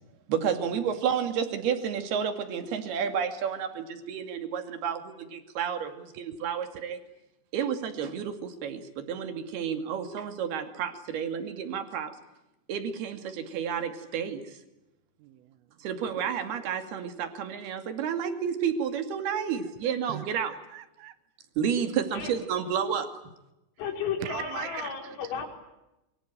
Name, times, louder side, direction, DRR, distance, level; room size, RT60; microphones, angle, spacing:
voice 1, 0.3-7.0 7.5-12.1 12.7-14.6 15.8-20.5 21.6-23.2, right 7 dB, 55° right, 8 dB, 3.9 m, -31 dB
voice 2, 15.2-15.8 19.7-21.2 24.2-25.3, right 12 dB, 80° right, 13 dB, 3.8 m, -41 dB
voice 3, 23.8-25.5, left 6 dB, 75° left, 4 dB, 7.0 m, -33 dB
26.5 x 24.0 x 9.1 m, 0.92 s
omnidirectional pair, 6.0 m